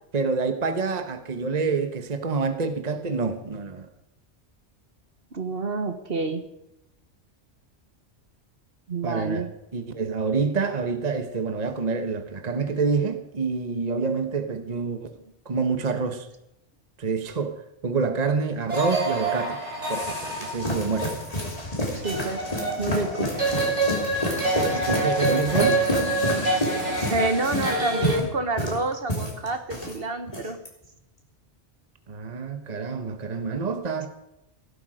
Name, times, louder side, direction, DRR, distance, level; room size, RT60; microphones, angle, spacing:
voice 1, 0.1-3.9 9.0-9.5 9.7-15.1 15.4-16.3 17.0-19.6 19.9-21.1 24.7-25.8 32.1-34.1, right 4 dB, 35° right, 8 dB, 1.2 m, -27 dB
voice 2, 5.3-6.4 8.9-9.5 21.9-22.4 22.8-23.3 27.1-30.6, right 3 dB, 55° right, 7 dB, 1.5 m, -28 dB
sound 1, 18.7-28.2, right 2 dB, 75° right, 3.8 m, -27 dB
sound 2, 20.0-30.0 30.3-30.7, equal, 30° left, 3.2 m, -29 dB
16.5 x 12.0 x 5.0 m, 0.85 s
omnidirectional pair, 1.2 m